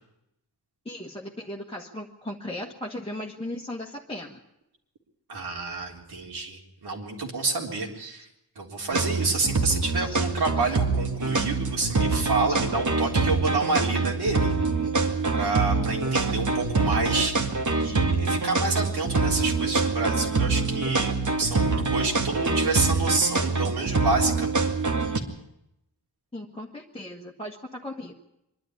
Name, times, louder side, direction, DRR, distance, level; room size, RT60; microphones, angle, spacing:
voice 1, 0.8-4.4 10.0-10.2 10.7-10.8 12.5-12.6 17.8-18.0 26.3-28.1, left 1 dB, 15° left, -3 dB, 1.5 m, -37 dB
voice 2, 5.3-8.3 8.6-14.5 15.3-17.4 17.7-24.5, right 3 dB, 80° right, -1 dB, 3.9 m, -28 dB
sound 1, 8.9-25.2, right 4 dB, 50° right, 2.1 m, -25 dB
24.0 x 12.0 x 9.7 m, 0.84 s
wide cardioid pair, 130°, 39 cm